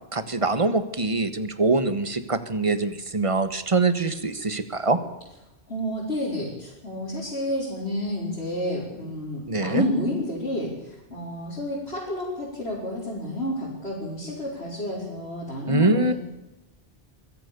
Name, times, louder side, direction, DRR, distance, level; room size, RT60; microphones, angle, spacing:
voice 1, 0.1-5.0 9.5-9.8 15.7-16.1, right 3 dB, 30° right, 12 dB, 1.4 m, -24 dB
voice 2, 5.7-16.1, left 1 dB, 85° left, -7 dB, 5.4 m, -30 dB
24.0 x 16.0 x 6.9 m, 0.96 s
omnidirectional pair, 1.0 m